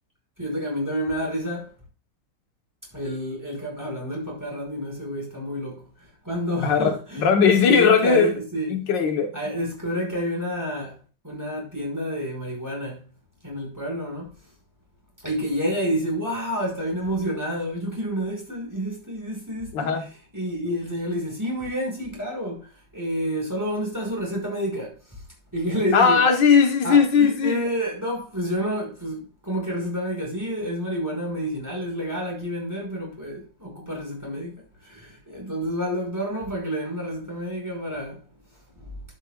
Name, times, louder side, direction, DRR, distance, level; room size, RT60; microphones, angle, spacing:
voice 1, 0.4-1.7 2.9-5.8 6.2-8.8 9.3-11.0 11.2-13.0 13.4-14.3 15.2-19.9 20.3-25.0 25.5-26.2 26.8-38.2 38.8-38.9, equal, 10° right, 4.9 m, -29 dB
voice 2, 6.6-8.3 8.7-9.3 19.7-20.1 25.9-27.6, left 6 dB, 75° left, 1.7 m, -18 dB
11.5 x 8.5 x 2.3 m
omnidirectional pair, 2.0 m